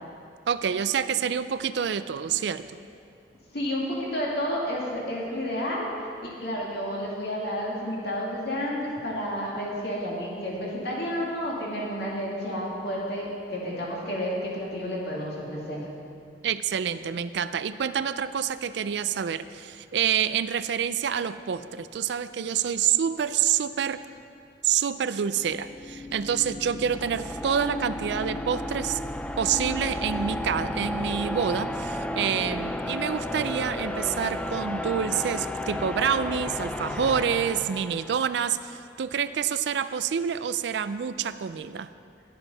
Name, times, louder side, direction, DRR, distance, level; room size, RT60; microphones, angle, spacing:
voice 1, 0.5-2.7 16.4-24.0 24.6-29.0 29.4-41.9, right 8 dB, 70° right, 13 dB, 0.4 m, -27 dB
voice 2, 3.5-5.9 6.2-15.8, equal, 60° left, -4 dB, 2.3 m, -31 dB
sound 1, 25.3-38.5, left 1 dB, 5° left, 0.3 m, -33 dB
11.0 x 8.0 x 5.4 m, 2.4 s
head